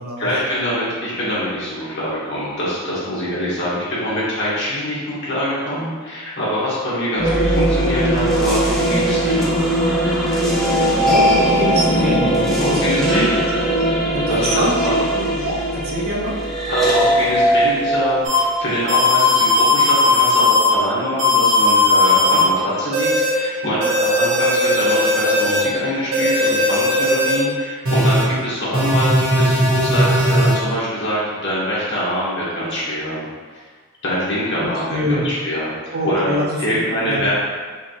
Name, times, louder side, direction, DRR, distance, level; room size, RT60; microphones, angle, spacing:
voice 1, 0.2-9.6 12.6-13.3 14.1-14.9 16.6-33.2 33.5-33.6 34.0-36.3 36.6-37.3, equal, 60° left, -8 dB, 1.4 m, -24 dB
sound 1, 7.1-19.3, right 1 dB, ahead, 0.9 m, -19 dB
voice 2, 11.0-13.3 14.1-14.8 15.1-16.4 22.2-22.4 34.6-35.2 35.9-36.6 37.0-37.3, equal, 50° right, -3 dB, 0.7 m, -24 dB
sound 2, 18.2-18.4 18.9-20.7 21.2-22.4 22.9-23.3 23.8-25.6 26.1-27.4 27.8-28.2 28.7-30.5, left 2 dB, 75° right, 1.1 m, -17 dB
4.5 x 2.8 x 2.8 m, 1.5 s
head